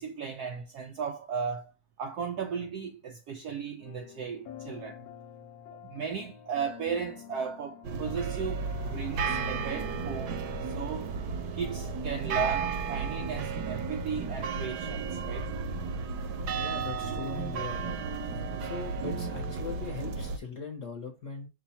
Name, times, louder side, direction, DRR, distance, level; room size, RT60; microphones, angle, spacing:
voice 1, 0.0-1.7 2.0-5.1 5.8-11.2 11.5-15.5, right 6 dB, 85° right, 0.8 m, -36 dB
sound 1, 3.8-10.8, left 10 dB, 75° left, 1.3 m, -47 dB
sound 2, 7.8-20.4, right 5 dB, 65° right, 1.1 m, -33 dB
voice 2, 16.6-18.0 18.6-21.5, left 4 dB, 50° left, 1.0 m, -40 dB
5.6 x 2.3 x 4.1 m
omnidirectional pair, 2.3 m